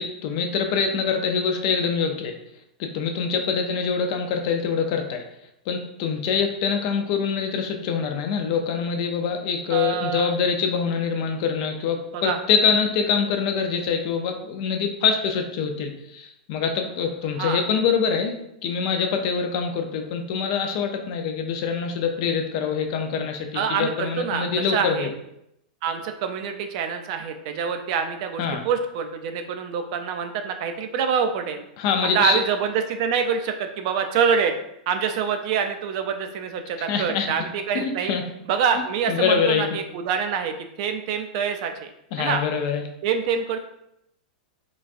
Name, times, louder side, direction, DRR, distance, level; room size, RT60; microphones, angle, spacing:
voice 1, 0.0-2.3 2.8-5.2 5.7-18.3 18.6-25.1 28.4-28.6 31.8-32.4 36.9-37.3 37.7-38.2 39.1-39.6 42.1-42.8, left 6 dB, 50° left, 5 dB, 0.5 m, -24 dB
voice 2, 9.7-10.3 12.1-12.4 17.4-17.7 23.5-25.1 25.8-31.6 32.0-34.5 34.9-38.1 38.5-41.9 42.2-42.4 43.0-43.6, right 6 dB, 50° right, 7 dB, 0.4 m, -26 dB
3.9 x 2.3 x 2.5 m, 0.79 s
supercardioid pair, 140°, 4 cm